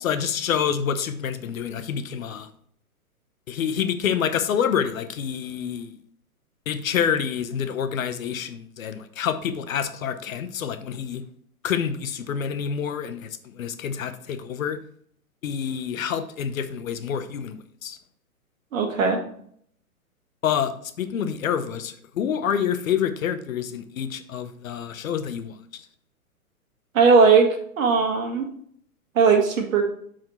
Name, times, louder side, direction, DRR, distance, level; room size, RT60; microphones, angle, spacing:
voice 1, 0.0-2.5 3.5-5.9 6.7-11.2 11.6-14.8 15.4-18.0 20.4-25.6, left 8 dB, 65° left, 11 dB, 0.8 m, -27 dB
voice 2, 18.7-19.2 26.9-27.5 27.8-28.5 29.1-29.8, right 5 dB, 65° right, 4 dB, 1.7 m, -18 dB
5.9 x 5.0 x 4.3 m, 0.64 s
hypercardioid pair, 130°, 44 cm